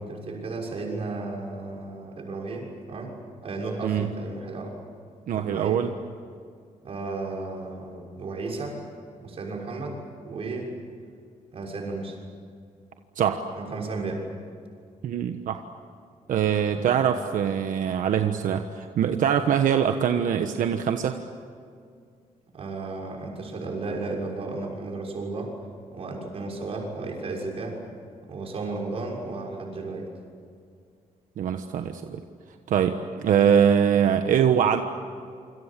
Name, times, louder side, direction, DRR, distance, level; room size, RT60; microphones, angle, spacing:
voice 1, 0.0-3.1 3.4-4.7 5.3-5.8 6.8-8.8 9.2-10.0 10.2-10.7 11.5-12.2 13.6-14.2 16.8-16.9 22.5-25.5 25.9-27.8 28.3-30.1, right 3 dB, 45° right, -1 dB, 6.4 m, -34 dB
voice 2, 5.3-5.9 13.2-13.4 15.0-15.6 16.3-21.2 31.4-32.2 32.7-34.8, right 8 dB, 85° right, 6 dB, 1.3 m, -23 dB
28.5 x 26.0 x 7.6 m, 2.3 s
wide cardioid pair, 180°, 13 cm